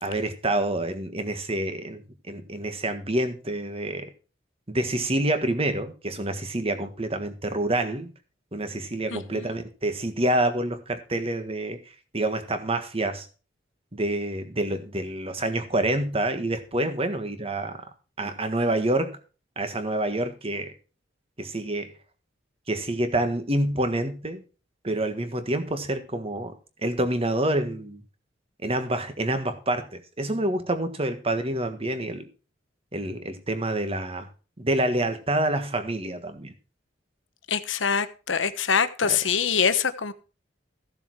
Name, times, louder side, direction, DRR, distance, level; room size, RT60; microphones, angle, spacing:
voice 1, 0.0-4.1 4.7-8.1 8.5-11.8 12.1-13.3 13.9-17.8 18.2-19.2 19.5-20.7 21.4-21.9 22.7-24.4 24.8-26.5 26.8-28.0 28.6-32.2 32.9-34.3 34.6-36.5 39.0-39.2, right 1 dB, 30° right, 1.6 m, -27 dB
voice 2, 37.5-40.1, left 6 dB, 85° left, 1.1 m, -24 dB
15.0 x 7.0 x 4.7 m
head